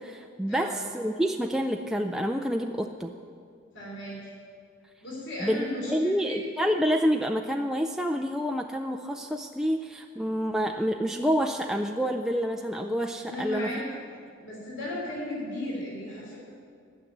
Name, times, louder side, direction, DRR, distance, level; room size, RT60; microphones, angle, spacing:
voice 1, 0.0-3.1 5.4-13.7, equal, ahead, 3 dB, 0.3 m, -28 dB
voice 2, 3.7-4.3 5.0-6.4 13.3-13.8 14.4-16.4, left 1 dB, 60° left, -5 dB, 3.4 m, -35 dB
13.0 x 6.8 x 9.9 m, 2.3 s
head